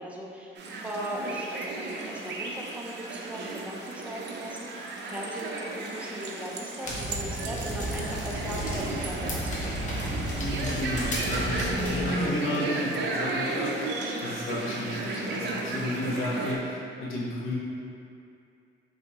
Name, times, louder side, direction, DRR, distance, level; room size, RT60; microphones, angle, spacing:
voice 1, 0.0-9.8, right 1 dB, 5° right, -3 dB, 0.5 m, -38 dB
sound 1, 0.6-16.6, right 2 dB, 60° right, 0.5 m, -34 dB
sound 2, 6.9-12.0, equal, 35° left, 0.9 m, -33 dB
voice 2, 10.4-17.5, left 1 dB, 80° left, -6 dB, 1.1 m, -32 dB
4.2 x 3.3 x 2.9 m, 2.5 s
cardioid pair, 125°, 20 cm